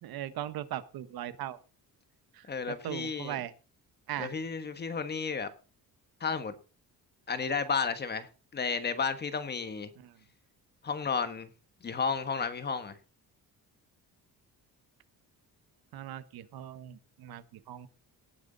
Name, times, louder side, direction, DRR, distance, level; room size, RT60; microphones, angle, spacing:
voice 1, 0.0-1.6 2.3-3.5 4.1-4.3 10.0-10.1 15.9-17.9, right 12 dB, 85° right, 12 dB, 1.4 m, -39 dB
voice 2, 2.5-3.4 4.2-5.5 6.2-6.5 7.3-9.9 10.8-11.5 11.8-13.0, left 5 dB, 30° left, 10 dB, 1.4 m, -32 dB
18.0 x 9.5 x 4.1 m, 0.35 s
cardioid pair, 170°, 36 cm